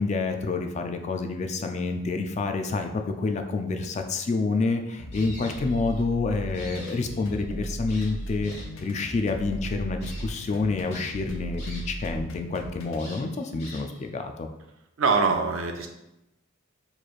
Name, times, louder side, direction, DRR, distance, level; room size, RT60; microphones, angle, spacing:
voice 1, 0.0-8.5 8.8-14.5, left 3 dB, 35° left, 5 dB, 0.3 m, -28 dB
sound 1, 5.0-13.1, equal, 75° left, 0.6 m, -37 dB
sound 2, 5.1-6.1 6.4-7.4 7.9-8.9 9.4-9.5 10.0-10.2 10.9-12.1 12.4-12.5 13.0-14.1, left 1 dB, 55° left, 1.5 m, -45 dB
voice 2, 15.0-15.9, right 4 dB, 85° right, 4 dB, 0.5 m, -23 dB
4.2 x 3.1 x 2.4 m, 0.92 s
head